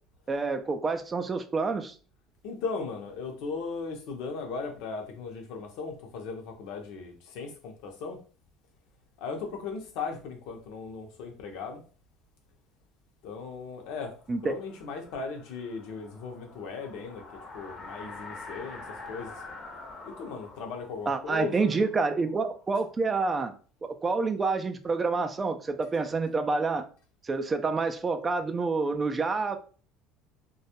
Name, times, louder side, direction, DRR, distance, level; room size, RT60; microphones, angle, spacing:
voice 1, 0.3-1.9 14.3-14.6 21.1-23.5 23.8-26.9 27.2-29.6, right 4 dB, 25° right, 0.3 m, -28 dB
voice 2, 2.4-8.2 9.2-11.8 13.2-14.1 14.4-19.3 20.0-21.8, left 4 dB, 75° left, 0.6 m, -37 dB
sound 1, 14.2-22.9, left 3 dB, 35° left, 0.6 m, -46 dB
2.2 x 2.0 x 2.8 m
supercardioid pair, 90°, 0 cm